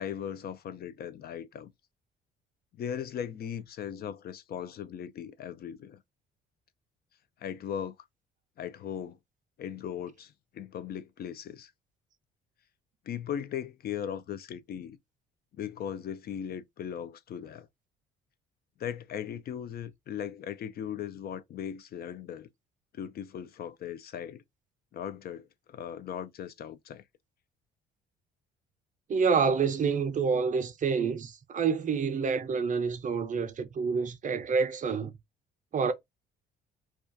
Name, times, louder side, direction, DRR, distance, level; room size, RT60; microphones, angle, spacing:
voice 1, 0.0-1.7 2.7-6.0 7.4-8.0 8.6-9.2 9.6-11.7 13.1-15.0 15.6-17.7 18.8-22.5 22.9-24.4 24.9-27.0, left 9 dB, 50° left, 0.4 m, -38 dB
voice 2, 29.1-35.1 35.7-35.9, right 5 dB, 40° right, 0.5 m, -28 dB
2.3 x 2.3 x 2.5 m
supercardioid pair, 70°, 21 cm